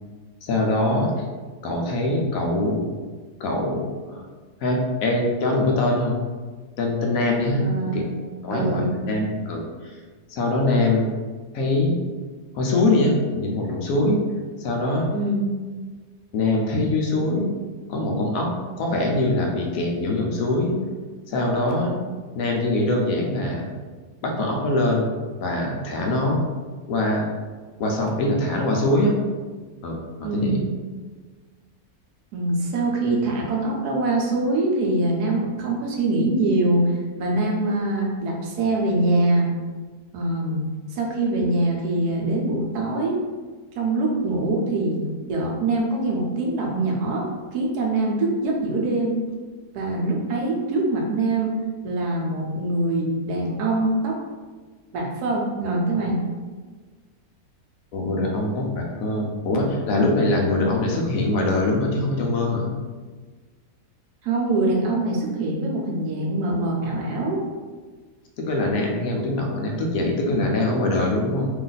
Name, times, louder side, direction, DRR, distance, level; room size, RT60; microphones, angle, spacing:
voice 1, 0.4-1.1 1.6-2.8 3.4-4.2 4.6-6.2 6.8-7.7 7.9-8.0 8.4-10.0 10.3-11.1 11.5-12.0 12.5-14.2 14.6-15.1 16.3-17.5 17.9-18.5 18.8-20.8 21.3-22.0 22.3-23.7 24.2-25.1 25.4-26.5 26.9-27.3 27.8-29.1 29.8-30.6 57.9-62.7 68.4-71.5, left 2 dB, 70° left, 0 dB, 1.0 m, -23 dB
voice 2, 7.6-8.2 8.5-9.0 15.1-15.5 30.2-30.7 32.3-36.8 37.2-39.5 40.1-40.6 40.9-43.2 43.8-47.3 47.5-49.2 49.7-51.5 51.8-54.1 54.9-56.2 64.2-67.4, right 2 dB, 80° right, -1 dB, 1.3 m, -23 dB
3.1 x 2.5 x 3.9 m, 1.4 s
omnidirectional pair, 1.6 m